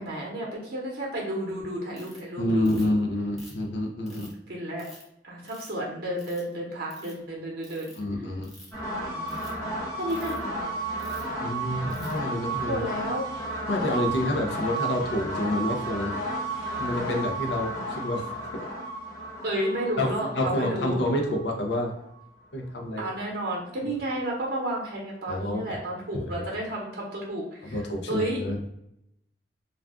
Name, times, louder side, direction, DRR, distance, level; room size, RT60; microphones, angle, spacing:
voice 1, 0.0-3.0 4.1-4.2 4.5-4.8 5.2-7.9 9.0-9.4 10.0-10.4 12.6-13.3 19.4-21.0 23.0-27.8 28.1-28.4, right 1 dB, 55° right, -3 dB, 0.8 m, -32 dB
Ratchet pawl, 1.9-2.2 2.6-3.0 3.4-4.3 4.8-5.0 5.5-5.8 6.2-6.5 6.8-7.1 7.6-8.0 8.4-8.8 9.2-9.5 10.1-10.4 11.0-11.3 11.9-12.2, equal, ahead, 0.8 m, -50 dB
voice 2, 2.4-4.3 8.0-8.5 11.4-12.8 13.7-16.1 16.8-18.3 20.0-21.9 22.5-23.0 25.3-25.8 26.1-26.4 27.6-28.6, left 1 dB, 65° left, 1 dB, 0.5 m, -28 dB
sound 1, 8.7-22.3, right 1 dB, 15° left, 1.1 m, -33 dB
2.4 x 2.2 x 3.5 m, 0.80 s
head